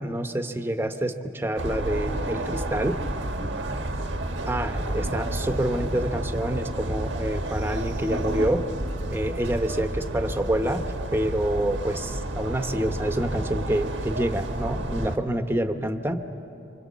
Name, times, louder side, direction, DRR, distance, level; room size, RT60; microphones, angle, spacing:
voice 1, 0.0-3.0 4.5-8.7 9.1-10.8 11.1-16.2, right 1 dB, 10° right, 7 dB, 0.9 m, -27 dB
sound 1, 1.6-15.2, right 1 dB, 90° right, 1.4 m, -30 dB
26.5 x 25.0 x 7.2 m, 2.9 s
head